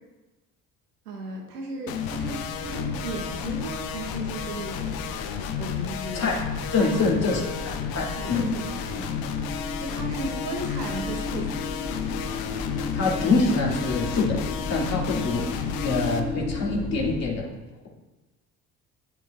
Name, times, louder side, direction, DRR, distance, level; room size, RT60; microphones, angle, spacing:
voice 1, 1.0-5.1 5.6-6.2 6.7-7.2 8.2-9.4 9.8-11.7, right 3 dB, 75° right, 1 dB, 1.3 m, -36 dB
sound 1, 1.9-16.2, left 8 dB, 50° left, 0.8 m, -32 dB
sound 2, 2.1-17.3, left 2 dB, 10° left, 1.8 m, -38 dB
voice 2, 6.1-8.5 12.9-14.4 14.7-15.5 15.8-17.5, left 3 dB, 35° left, -3 dB, 2.7 m, -25 dB
sound 3, 6.6-17.2, left 4 dB, 70° left, 1.1 m, -36 dB
11.5 x 6.9 x 2.5 m, 1.1 s
figure-of-eight pair, 55°, 47 cm